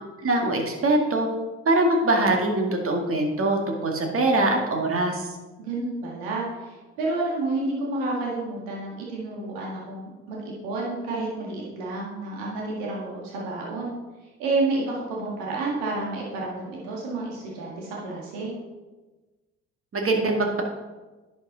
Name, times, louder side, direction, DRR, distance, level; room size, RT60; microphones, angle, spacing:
voice 1, 0.2-1.3 1.7-5.3 19.9-20.6, right 2 dB, 40° right, 2 dB, 2.0 m, -23 dB
voice 2, 5.6-13.9 14.4-18.5, right 2 dB, 80° right, -3 dB, 2.0 m, -30 dB
10.5 x 5.9 x 3.9 m, 1.2 s
hypercardioid pair, 55°, 34 cm